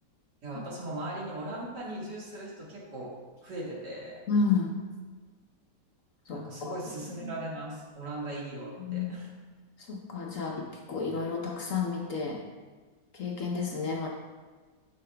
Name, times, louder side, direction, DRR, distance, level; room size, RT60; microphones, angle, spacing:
voice 1, 0.4-3.1 3.4-4.2 6.3-9.3, right 1 dB, 75° right, -5 dB, 2.4 m, -38 dB
voice 2, 4.3-4.8 6.3-6.7 7.2-7.3 8.8-9.1 9.9-10.6 10.9-12.4 13.1-14.1, left 4 dB, 60° left, 0 dB, 1.0 m, -30 dB
10.0 x 6.6 x 2.2 m, 1.4 s
omnidirectional pair, 1.8 m